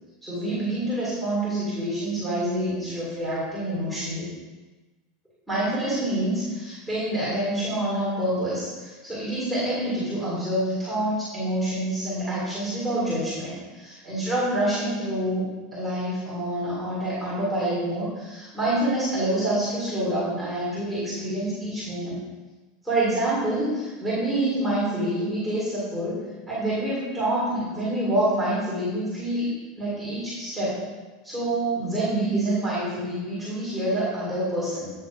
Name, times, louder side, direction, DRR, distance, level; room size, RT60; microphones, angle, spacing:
voice 1, 0.2-4.3 5.5-15.5 15.7-22.2 22.8-26.2 26.5-29.5 29.8-30.8 31.2-34.9, right 1 dB, ahead, -10 dB, 1.9 m, -27 dB
8.5 x 5.8 x 2.5 m, 1.2 s
supercardioid pair, 180°, 0 cm